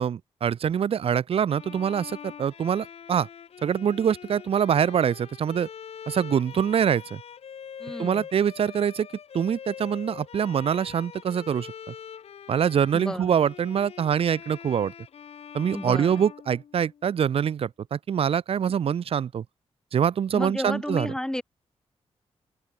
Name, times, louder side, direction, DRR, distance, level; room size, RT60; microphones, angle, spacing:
voice 1, 0.0-3.3 3.6-5.7 6.1-7.2 8.0-9.1 9.3-11.9 12.5-14.9 15.5-19.4 19.9-21.1, right 8 dB, 60° right, 0.7 m, -24 dB
Bowed string instrument, 1.5-17.2, left 8 dB, 70° left, 1.4 m, -43 dB
voice 2, 7.8-8.3 12.9-13.4 15.7-16.1 20.3-21.4, left 1 dB, 5° left, 1.2 m, -32 dB
open air
cardioid pair, 85°, 11 cm